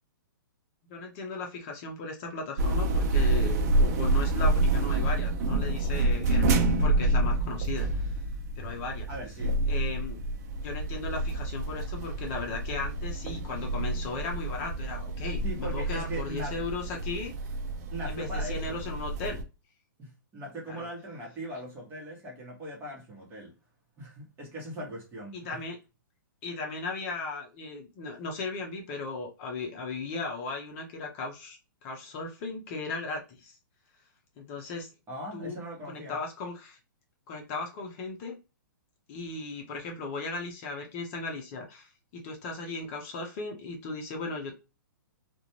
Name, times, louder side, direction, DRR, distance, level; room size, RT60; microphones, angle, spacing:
voice 1, 0.9-8.2 8.6-9.1 9.7-10.2 10.6-17.3 18.0-19.4 20.7-20.9 25.3-25.8 26.4-33.6 34.4-34.9 35.3-35.6 35.8-36.8 37.3-38.4 39.1-44.6, left 3 dB, 40° left, 0.7 m, -37 dB
sound 1, 2.6-19.4, right 2 dB, 50° right, 0.5 m, -28 dB
voice 2, 9.1-9.6 15.4-16.6 17.9-18.8 20.0-23.5 24.0-25.6 35.1-36.2, right 1 dB, 20° right, 1.0 m, -40 dB
2.4 x 2.2 x 2.9 m
hypercardioid pair, 135°, 11 cm